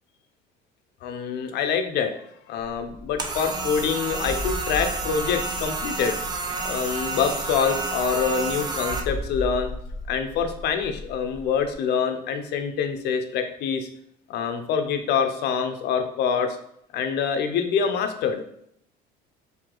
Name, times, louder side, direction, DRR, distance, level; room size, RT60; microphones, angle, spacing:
voice 1, 1.0-2.1 2.5-6.2 6.6-9.7 10.1-13.9 14.3-16.6 16.9-18.4, left 6 dB, 60° left, 6 dB, 0.7 m, -25 dB
sound 1, 2.6-11.7, left 1 dB, 25° left, 0.7 m, -37 dB
sound 2, 3.2-9.0, right 3 dB, 20° right, 0.6 m, -30 dB
4.8 x 2.8 x 3.8 m, 0.70 s
cardioid pair, 140°, 19 cm